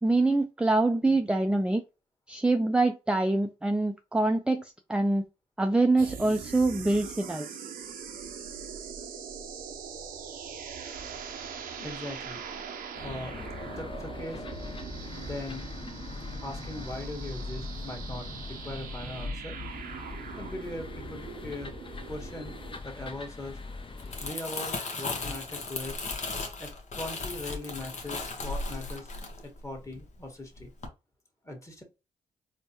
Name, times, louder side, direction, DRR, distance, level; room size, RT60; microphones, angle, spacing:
voice 1, 0.0-1.8 2.3-5.2 5.6-7.6, right 2 dB, 5° right, 0.5 m, -25 dB
sound 1, 6.0-22.8, right 7 dB, 80° right, 0.7 m, -42 dB
voice 2, 11.8-12.4 13.0-13.3 13.6-14.4 15.2-15.7 16.4-19.6 20.4-21.7 22.1-22.5 22.8-23.6 24.2-26.0 26.6-29.1 29.4-30.7 31.4-31.8, left 1 dB, 20° left, 1.6 m, -40 dB
sound 2, 12.9-24.3, left 3 dB, 35° left, 0.8 m, -41 dB
Crumpling crinkling, 23.8-30.2 30.6-30.9, left 3 dB, 55° left, 1.0 m, -36 dB
4.3 x 2.2 x 2.9 m
supercardioid pair, 50°, 15 cm